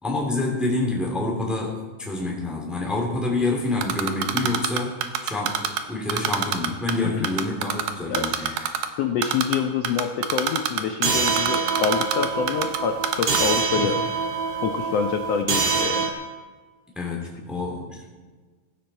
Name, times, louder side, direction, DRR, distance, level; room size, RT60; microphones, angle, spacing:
voice 1, 0.0-8.5 13.7-13.9 16.9-18.0, left 2 dB, ahead, -2 dB, 2.7 m, -27 dB
Typing, 3.8-5.8 6.1-6.9 7.2-8.9 9.2-9.6 9.8-12.8 13.0-13.4, right 9 dB, 80° right, 2.7 m, -24 dB
voice 2, 8.1-14.0 14.6-16.1, left 7 dB, 90° left, 5 dB, 1.4 m, -26 dB
sound 1, 11.0-16.1, right 5 dB, 45° right, 2.0 m, -25 dB
16.0 x 15.0 x 4.4 m, 1.4 s
omnidirectional pair, 3.9 m